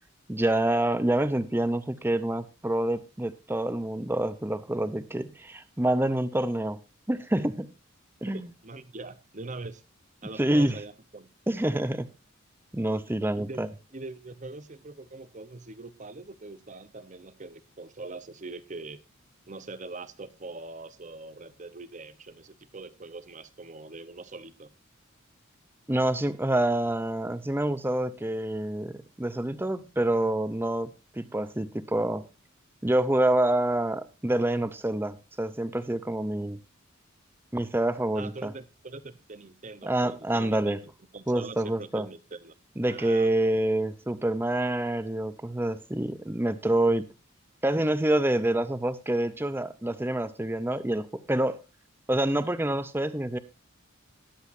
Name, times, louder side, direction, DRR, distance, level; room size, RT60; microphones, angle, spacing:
voice 1, 0.3-6.8 7.1-7.7 8.2-8.4 10.4-10.8 11.5-12.1 12.7-13.7 25.9-30.9 31.2-32.2 32.8-36.6 37.5-38.5 39.8-40.8 41.3-42.1 42.8-47.1 47.6-51.6 52.1-53.4, right 1 dB, 10° right, 0.6 m, -27 dB
voice 2, 8.3-9.8 10.2-11.3 13.4-13.7 13.9-19.0 19.5-24.7 38.1-42.5 42.9-43.3, right 3 dB, 35° right, 0.9 m, -42 dB
18.5 x 7.9 x 2.6 m
head